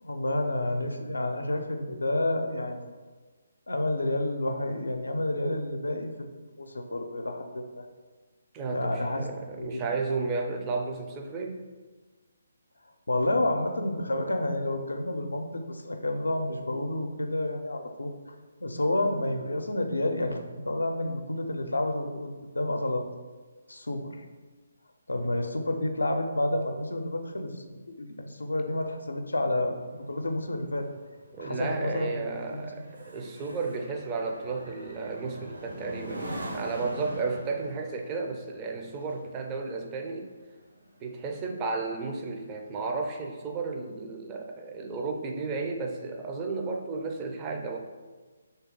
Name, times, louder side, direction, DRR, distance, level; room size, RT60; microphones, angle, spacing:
voice 1, 0.0-2.8 3.7-6.3 6.6-7.9 8.7-9.2 9.5-9.8 13.1-18.1 18.6-23.1 23.7-24.2 25.1-30.9 31.4-32.2 32.5-32.8, left 1 dB, 75° left, 5 dB, 0.4 m, -30 dB
voice 2, 8.5-11.6 31.3-40.3 41.0-47.8, right 4 dB, 20° right, 2 dB, 0.4 m, -33 dB
sound 1, 29.8-41.5 41.9-42.2, right 1 dB, 75° right, 0.9 m, -43 dB
3.2 x 2.8 x 3.7 m, 1.4 s
figure-of-eight pair, 140°, 0 cm